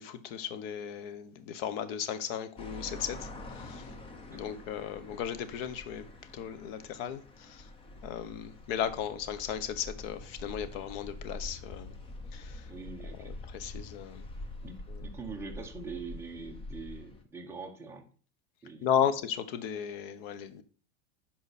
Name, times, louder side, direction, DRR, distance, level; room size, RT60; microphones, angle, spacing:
voice 1, 0.0-3.9 4.3-6.1 6.3-7.7 8.0-11.9 12.3-12.7 13.2-14.2 14.9-15.1 18.8-20.6, left 9 dB, 55° left, 1.2 m, -35 dB
sound 1, 2.6-17.2, left 2 dB, 15° left, 0.9 m, -45 dB
voice 2, 12.7-13.3 14.6-14.8 15.0-18.1 18.6-18.9, right 4 dB, 5° right, 1.1 m, -43 dB
10.5 x 5.8 x 4.3 m
supercardioid pair, 160°, 35 cm